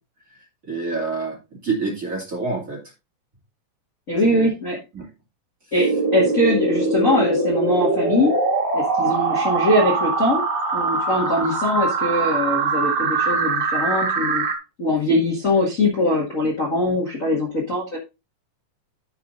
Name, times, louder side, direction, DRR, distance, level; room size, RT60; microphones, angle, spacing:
voice 1, 0.6-2.8 4.2-4.5 4.9-5.1, right 4 dB, 25° right, -3 dB, 2.2 m, -27 dB
voice 2, 4.1-4.8 5.7-8.4 8.7-10.4 10.7-14.4 14.8-18.0, left 1 dB, 30° left, -3 dB, 1.6 m, -22 dB
sound 1, 5.8-14.6, right 3 dB, 50° right, 2.3 m, -22 dB
13.5 x 5.8 x 2.6 m, 0.26 s
omnidirectional pair, 3.9 m